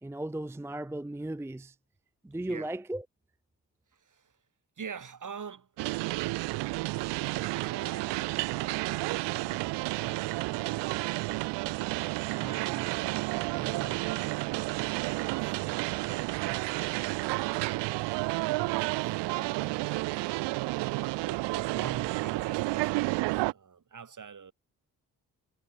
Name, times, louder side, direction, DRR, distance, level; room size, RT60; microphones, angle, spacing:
voice 1, 0.0-1.8 2.2-3.0, right 1 dB, 5° right, 0.6 m, -36 dB
voice 2, 3.9-4.4 4.8-5.7 6.9-11.8 12.3-17.5 18.1-20.0 20.8-24.5, right 6 dB, 45° right, 2.8 m, -46 dB
sound 1, 5.8-23.5, right 22 dB, 75° right, 0.6 m, -31 dB
hypercardioid pair, 45°, 42 cm